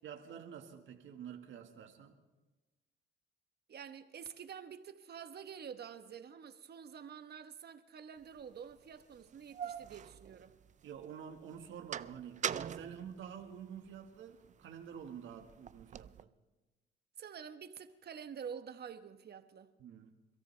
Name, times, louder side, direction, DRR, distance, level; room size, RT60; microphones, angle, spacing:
voice 1, 0.0-2.2 10.8-16.3 19.8-20.1, right 8 dB, 75° right, 1.7 m, -48 dB
voice 2, 3.7-10.6 17.2-19.7, right 7 dB, 55° right, 1.1 m, -48 dB
sound 1, 8.4-8.5 9.2-11.0 11.4-14.0 14.4-16.2, right 8 dB, 40° right, 0.4 m, -43 dB
28.0 x 13.5 x 3.3 m
cardioid pair, 90°, 20 cm